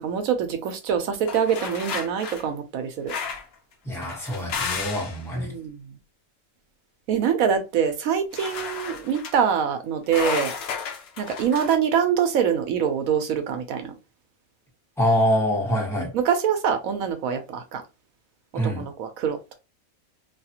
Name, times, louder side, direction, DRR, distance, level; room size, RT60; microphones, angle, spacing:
voice 1, 0.0-3.1 5.3-5.9 7.1-10.5 11.2-13.9 16.1-17.8 18.8-19.4, right 7 dB, 80° right, 1.0 m, -24 dB
sound 1, 1.3-2.4 3.1-3.5 4.0-5.2 8.3-9.3 10.1-11.8, left 6 dB, 60° left, 0.7 m, -32 dB
voice 2, 3.8-5.5 15.0-16.1 18.5-18.9, equal, ahead, 1.0 m, -24 dB
2.7 x 2.4 x 2.8 m
omnidirectional pair, 1.5 m